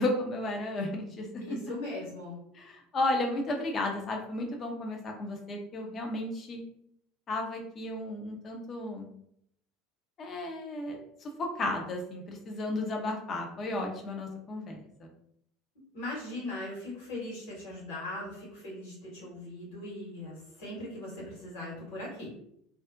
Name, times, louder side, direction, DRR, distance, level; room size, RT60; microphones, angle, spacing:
voice 1, 0.0-1.6 2.6-6.6 7.3-9.1 10.2-15.1, left 2 dB, 35° left, 2 dB, 0.6 m, -33 dB
voice 2, 1.4-2.4 15.7-22.3, left 2 dB, 65° left, -5 dB, 1.3 m, -39 dB
2.5 x 2.1 x 2.4 m, 0.72 s
figure-of-eight pair, 70°, 0 cm